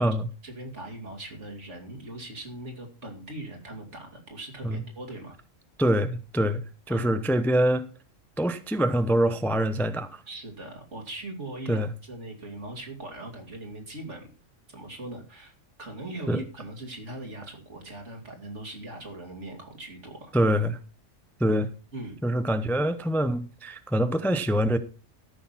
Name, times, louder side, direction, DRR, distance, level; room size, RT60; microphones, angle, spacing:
voice 1, 0.4-5.4 6.9-7.1 10.3-14.3 14.7-15.5 15.8-20.3 21.9-22.1, right 2 dB, 65° right, 3.2 m, -40 dB
voice 2, 5.8-6.6 6.9-7.9 8.4-10.2 11.7-11.9 16.3-16.4 20.3-20.8 21.4-21.7 22.2-24.8, equal, ahead, 0.6 m, -24 dB
13.5 x 6.4 x 5.9 m
omnidirectional pair, 1.3 m